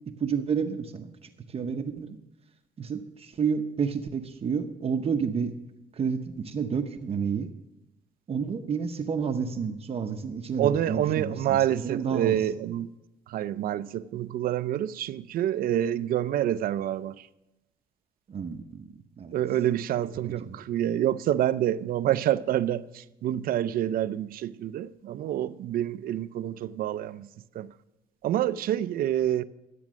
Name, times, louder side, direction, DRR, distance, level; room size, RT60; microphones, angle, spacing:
voice 1, 0.1-2.2 2.8-5.5 5.9-7.5 8.3-12.4 18.3-18.9 19.2-19.3 20.5-20.6, right 6 dB, 35° right, 0.8 m, -30 dB
voice 2, 10.6-12.9 13.3-17.3 19.3-27.3 27.5-27.7 28.2-29.4, right 11 dB, 60° right, 0.5 m, -27 dB
12.5 x 8.5 x 6.2 m
cardioid pair, 110°, 17 cm